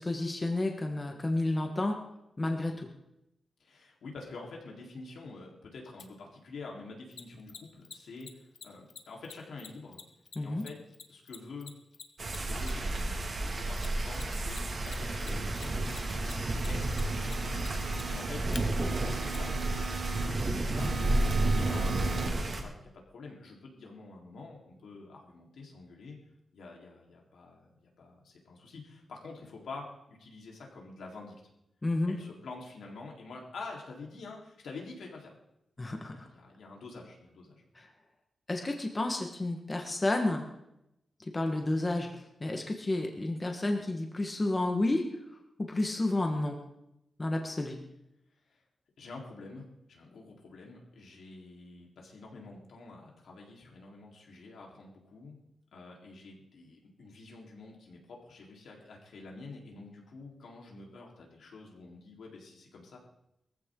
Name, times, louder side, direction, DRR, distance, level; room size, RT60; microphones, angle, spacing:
voice 1, 0.0-2.0 2.4-2.9 10.3-10.6 31.8-32.1 35.8-36.3 37.7-37.9 38.5-40.5 41.3-42.1 42.4-45.0 45.6-46.6 47.2-47.8, left 2 dB, 20° left, 3 dB, 1.4 m, -31 dB
voice 2, 3.6-10.0 10.4-10.8 11.1-11.7 12.2-17.3 18.1-18.4 18.9-20.9 21.5-26.2 26.5-31.3 32.1-35.3 35.8-37.6 48.5-48.6 49.0-55.4 55.7-63.0, left 3 dB, 90° left, -1 dB, 3.9 m, -47 dB
Mechanisms, 6.0-6.1 7.1-13.0 13.8-14.6 14.8-18.6 19.3-19.4, left 6 dB, 65° left, 1.2 m, -46 dB
sound 1, 12.2-22.6, right 2 dB, 40° right, 2.2 m, -31 dB
sound 2, 15.2-16.3 16.8-18.3 18.8-20.3 20.8-22.3, right 8 dB, 90° right, 1.6 m, -42 dB
21.5 x 15.0 x 3.8 m, 0.84 s
wide cardioid pair, 180°, 0 cm